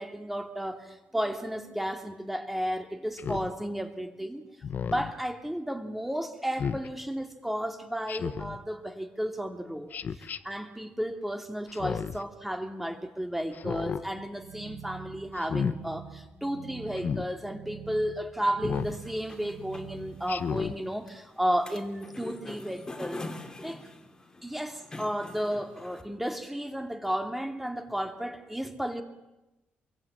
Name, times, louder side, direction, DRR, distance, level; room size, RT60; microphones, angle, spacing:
voice 1, 0.0-4.4 4.8-23.2 23.6-23.8 24.4-29.0, equal, 5° right, 5 dB, 2.9 m, -33 dB
Speech synthesizer, 3.2-3.5 4.6-5.1 6.6-6.9 8.1-8.6 9.9-10.4 11.7-12.2 13.5-14.0 15.4-15.8 17.0-17.3 18.6-19.0 20.3-20.8, left 7 dB, 50° left, 1.2 m, -32 dB
sound 1, 14.1-20.6, right 6 dB, 75° right, 1.9 m, -46 dB
sound 2, 18.8-26.0, left 2 dB, 20° left, 3.0 m, -45 dB
27.0 x 23.0 x 8.9 m, 1.0 s
cardioid pair, 120°, 4 cm